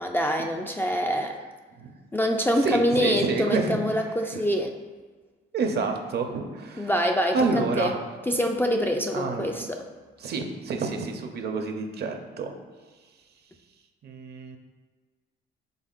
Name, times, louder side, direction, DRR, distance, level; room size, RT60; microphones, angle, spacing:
voice 1, 0.0-1.4 2.1-4.7 6.8-7.4 7.8-7.9 8.3-9.8, equal, 10° left, 3 dB, 0.3 m, -25 dB
voice 2, 2.6-3.8 4.3-4.4 5.5-6.9 7.3-8.0 9.1-9.7 10.2-12.5 14.0-14.6, right 4 dB, 55° right, 4 dB, 0.6 m, -28 dB
5.4 x 3.6 x 2.4 m, 1.4 s
cardioid pair, 90°, 20 cm